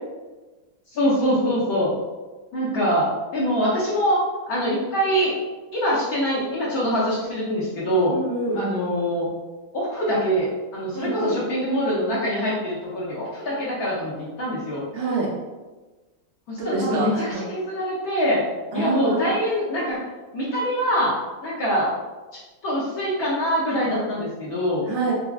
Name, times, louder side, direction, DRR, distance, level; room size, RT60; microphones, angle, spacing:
voice 1, 0.9-1.9 2.5-4.2 4.5-5.4 5.7-8.1 8.5-9.3 9.7-14.9 16.5-18.4 18.7-20.1 20.3-21.1 21.4-21.9 22.3-24.8, equal, 65° left, -7 dB, 1.0 m, -24 dB
voice 2, 8.1-8.7 10.9-11.3 14.9-15.3 16.6-17.4 18.7-19.2 24.9-25.1, right 3 dB, 85° right, -6 dB, 1.8 m, -26 dB
4.5 x 2.1 x 2.3 m, 1.2 s
omnidirectional pair, 2.2 m